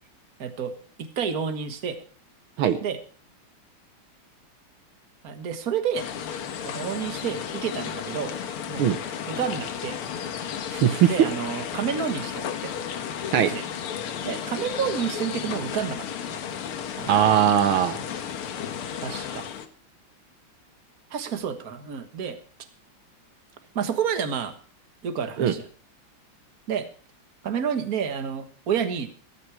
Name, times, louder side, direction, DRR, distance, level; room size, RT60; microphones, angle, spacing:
voice 1, 0.4-2.0 2.8-3.0 5.2-6.1 6.6-8.3 8.7-8.8 9.3-10.0 11.1-12.7 13.5-13.6 14.3-16.1 17.0-17.1 19.0-19.5 21.1-22.4 23.8-24.5 25.0-25.7 26.7-26.9 27.4-29.1, right 7 dB, 45° right, 9 dB, 1.9 m, -29 dB
sound 1, 6.0-19.7, left 8 dB, 85° left, 2.2 m, -33 dB
voice 2, 10.7-11.1 13.3-13.5 17.1-18.0 25.4-25.5, right 10 dB, 80° right, 10 dB, 1.9 m, -20 dB
15.0 x 14.5 x 4.7 m, 0.40 s
omnidirectional pair, 2.3 m